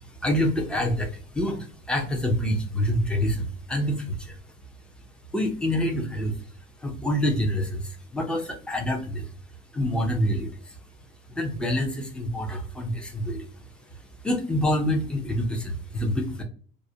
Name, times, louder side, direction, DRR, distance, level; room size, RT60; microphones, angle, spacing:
voice 1, 0.0-4.4 5.3-6.4 6.8-9.3 9.7-10.8 11.3-13.4 14.2-16.4, equal, 5° left, 2 dB, 0.5 m, -27 dB
2.4 x 2.1 x 2.7 m, 0.43 s
cardioid pair, 150°, 18 cm